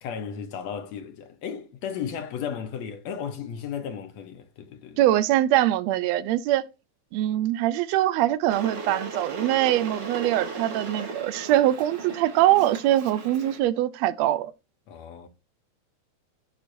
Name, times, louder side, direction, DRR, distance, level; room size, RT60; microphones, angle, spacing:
voice 1, 0.0-5.0 14.9-15.3, left 7 dB, 70° left, 1.9 m, -35 dB
voice 2, 5.0-6.6 7.1-14.5, right 13 dB, 80° right, 1.6 m, -23 dB
Water / Boiling, 8.5-13.6, right 3 dB, 45° right, 1.7 m, -36 dB
15.0 x 6.0 x 2.6 m
omnidirectional pair, 3.4 m